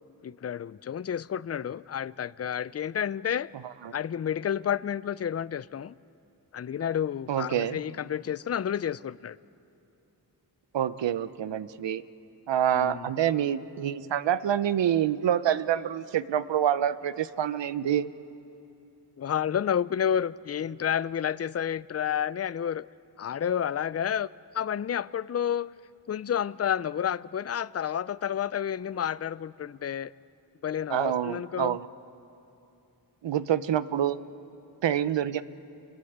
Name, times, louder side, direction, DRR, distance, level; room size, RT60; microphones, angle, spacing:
voice 1, 0.2-3.5 3.9-6.0 6.5-9.4 12.7-13.1 19.2-22.9 23.2-24.3 24.5-25.7 26.1-30.1 30.6-31.8, left 9 dB, 35° left, 0.5 m, -30 dB
voice 2, 7.3-7.8 10.7-12.0 12.5-18.1 30.9-31.9 33.2-34.2 34.8-35.4, right 10 dB, 90° right, 0.8 m, -27 dB
28.5 x 20.0 x 8.0 m
cardioid pair, 65°, 42 cm